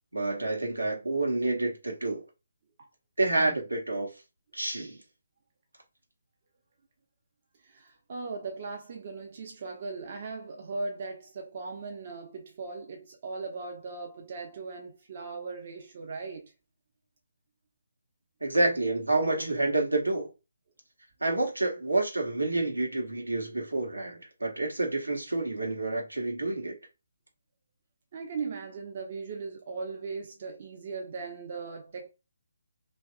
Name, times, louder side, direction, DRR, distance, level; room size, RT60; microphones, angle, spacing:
voice 1, 0.1-2.2 3.2-4.1 4.5-5.0 18.4-20.3 21.2-26.8, right 2 dB, 80° right, 0.9 m, -28 dB
voice 2, 7.6-16.5 28.1-32.1, right 4 dB, 40° right, 0.5 m, -38 dB
2.8 x 2.3 x 2.3 m
figure-of-eight pair, 145°, 0 cm